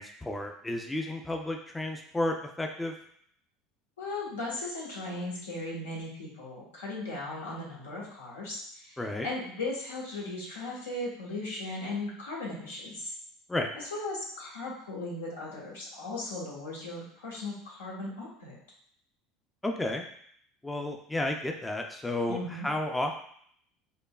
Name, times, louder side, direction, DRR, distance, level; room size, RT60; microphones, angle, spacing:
voice 1, 0.0-2.9 9.0-9.3 13.5-13.7 19.6-20.0 20.6-23.1, left 1 dB, 10° left, 3 dB, 0.4 m, -32 dB
voice 2, 4.0-13.1 13.9-18.6 22.3-22.7, left 2 dB, 85° left, -4 dB, 1.1 m, -37 dB
5.0 x 2.2 x 2.3 m, 0.65 s
hypercardioid pair, 75°, 0 cm